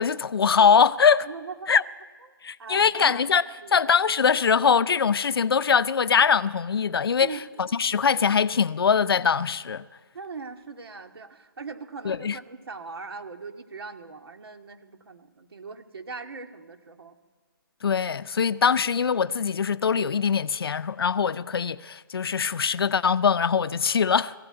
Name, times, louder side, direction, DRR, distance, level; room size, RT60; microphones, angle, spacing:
voice 1, 0.0-1.3 1.7-1.8 2.4-3.4 3.7-9.8 12.0-12.4 17.8-24.3, left 6 dB, 85° left, 0.6 m, -22 dB
voice 2, 1.2-1.8 2.6-3.9 7.2-7.8 10.1-17.2, right 4 dB, 85° right, 2.1 m, -40 dB
22.0 x 15.5 x 8.9 m
hypercardioid pair, 165°, 12 cm